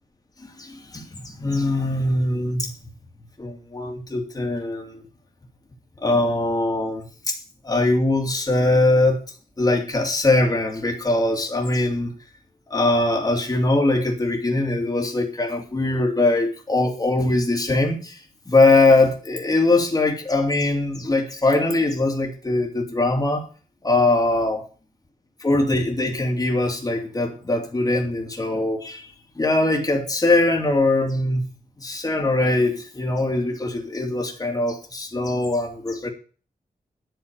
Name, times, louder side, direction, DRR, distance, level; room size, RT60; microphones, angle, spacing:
voice 1, 0.4-2.7 3.4-5.0 6.0-9.2 9.6-12.1 12.7-18.2 18.5-23.5 23.8-24.6 25.4-29.1 29.4-31.5 31.8-36.1, left 2 dB, 25° left, 1 dB, 2.7 m, -21 dB
10.5 x 6.9 x 9.2 m, 0.39 s
wide cardioid pair, 160°, 15 cm